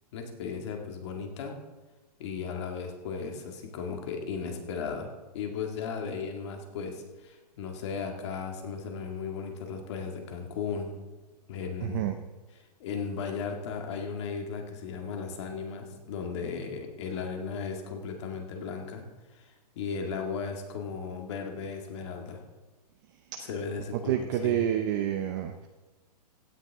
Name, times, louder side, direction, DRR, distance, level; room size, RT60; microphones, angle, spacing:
voice 1, 0.1-1.6 2.2-5.1 5.3-11.0 11.5-12.0 12.5-19.0 19.3-22.4 23.4-24.7, left 5 dB, 40° left, 3 dB, 2.0 m, -36 dB
voice 2, 11.8-12.1 24.1-25.7, right 10 dB, 30° right, 6 dB, 0.6 m, -28 dB
16.5 x 9.6 x 3.6 m, 1.2 s
hypercardioid pair, 160°, 21 cm